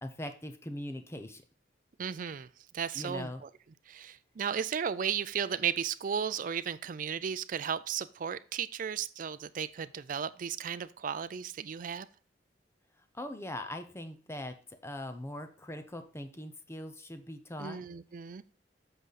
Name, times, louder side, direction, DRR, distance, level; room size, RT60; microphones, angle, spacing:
voice 1, 0.0-1.4 2.9-3.4 13.1-14.6 14.8-17.8, left 1 dB, 15° left, 8 dB, 0.7 m, -41 dB
voice 2, 2.0-3.5 3.9-12.1 17.6-18.4, right 7 dB, 45° right, 14 dB, 0.4 m, -35 dB
8.0 x 4.9 x 4.0 m, 0.40 s
head